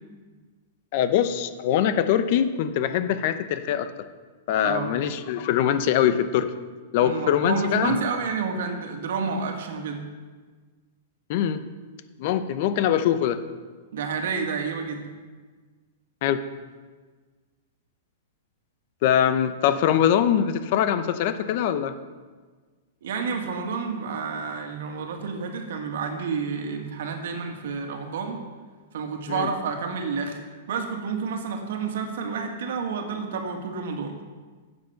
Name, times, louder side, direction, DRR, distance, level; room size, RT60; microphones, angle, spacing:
voice 1, 0.9-3.9 4.5-6.5 6.9-8.0 11.3-11.6 12.2-13.4 16.2-16.4 19.0-21.9 29.3-29.5, left 10 dB, 40° left, 11 dB, 0.7 m, -23 dB
voice 2, 4.6-4.9 7.0-10.0 13.9-15.1 23.0-28.4 28.9-30.4 30.7-34.1, right 5 dB, 65° right, 4 dB, 1.8 m, -30 dB
11.0 x 8.0 x 5.8 m, 1.4 s
supercardioid pair, 165°, 0 cm